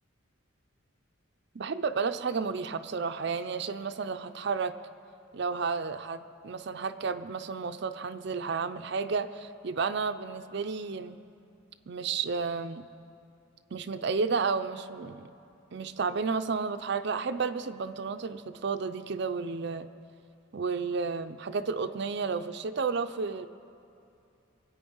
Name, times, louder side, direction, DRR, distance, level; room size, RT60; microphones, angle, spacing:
voice 1, 1.5-4.7 5.3-11.2 11.9-12.9 13.7-15.3 15.7-19.9 20.5-23.5, right 5 dB, 55° right, 9 dB, 0.5 m, -32 dB
24.0 x 8.7 x 5.5 m, 2.6 s
head